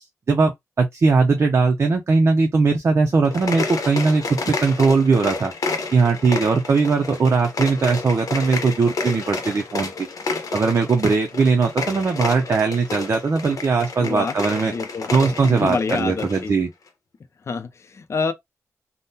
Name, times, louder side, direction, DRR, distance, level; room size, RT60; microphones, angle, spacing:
voice 1, 0.0-5.5 5.9-10.1 10.5-14.7 15.1-16.7, right 4 dB, 50° right, 0.5 m, -19 dB
sound 1, 3.2-16.4, left 4 dB, 90° left, 0.7 m, -30 dB
voice 2, 14.0-14.4 14.6-15.1 15.4-16.5 17.5-18.3, left 5 dB, 55° left, 0.4 m, -27 dB
3.5 x 2.1 x 2.7 m
wide cardioid pair, 145°, 6 cm